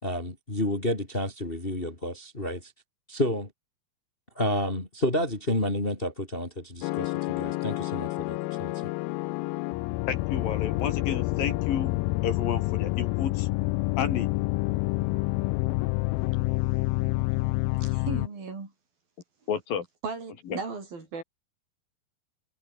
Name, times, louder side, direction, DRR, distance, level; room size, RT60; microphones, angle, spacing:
voice 1, 0.0-2.7 3.1-3.5 4.3-8.7, left 1 dB, 15° left, 3.0 m, -30 dB
sound 1, 6.8-18.3, left 21 dB, 80° left, 2.2 m, -28 dB
voice 2, 10.1-12.0 12.2-13.5 14.0-14.3 19.5-19.9 20.5-20.6, left 7 dB, 60° left, 4.2 m, -31 dB
voice 3, 17.8-18.7 20.0-21.2, right 4 dB, 60° right, 8.2 m, -36 dB
omnidirectional pair, 4.6 m